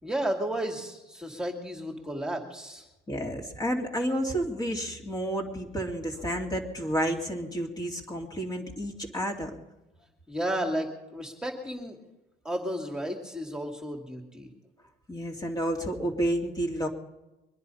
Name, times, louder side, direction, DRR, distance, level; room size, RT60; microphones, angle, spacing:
voice 1, 0.0-2.9 10.3-12.0 12.4-14.5, right 1 dB, 5° right, 2 dB, 2.4 m, -33 dB
voice 2, 3.1-9.5 15.1-16.9, right 1 dB, 20° left, 1 dB, 2.5 m, -30 dB
23.5 x 10.5 x 5.5 m, 1.0 s
cardioid pair, 110°, 17 cm